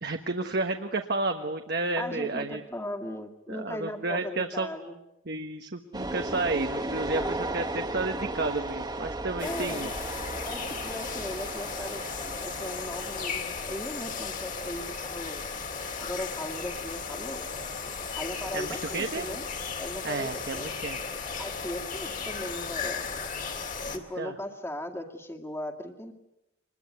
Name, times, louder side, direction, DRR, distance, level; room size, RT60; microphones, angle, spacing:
voice 1, 0.0-2.6 3.5-4.7 5.3-9.9 18.5-19.3 20.0-21.0 23.9-24.3, right 2 dB, 55° right, 5 dB, 1.3 m, -31 dB
voice 2, 2.0-5.0 7.2-7.3 9.4-9.9 10.4-15.4 16.0-17.5 18.2-19.4 19.8-20.7 21.4-23.3 23.9-26.1, left 1 dB, 15° left, 5 dB, 2.2 m, -38 dB
sound 1, 5.9-19.0, right 2 dB, 20° right, 1.4 m, -37 dB
sound 2, 9.4-24.0, left 5 dB, 40° left, 2.6 m, -35 dB
25.5 x 21.0 x 9.5 m, 0.90 s
head